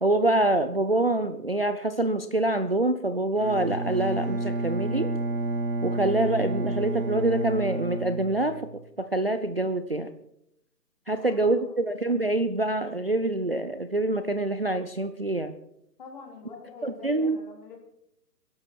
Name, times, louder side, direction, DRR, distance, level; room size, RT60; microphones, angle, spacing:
voice 1, 0.0-5.1 5.8-8.6 9.0-10.1 11.1-15.5 16.8-17.4, right 2 dB, 40° right, 9 dB, 0.5 m, -26 dB
Bowed string instrument, 3.4-8.8, right 2 dB, 55° right, 4.3 m, -30 dB
voice 2, 11.1-11.9 16.0-17.8, left 4 dB, 30° left, 0 dB, 3.5 m, -45 dB
21.5 x 11.5 x 4.4 m, 0.78 s
hypercardioid pair, 175°, 49 cm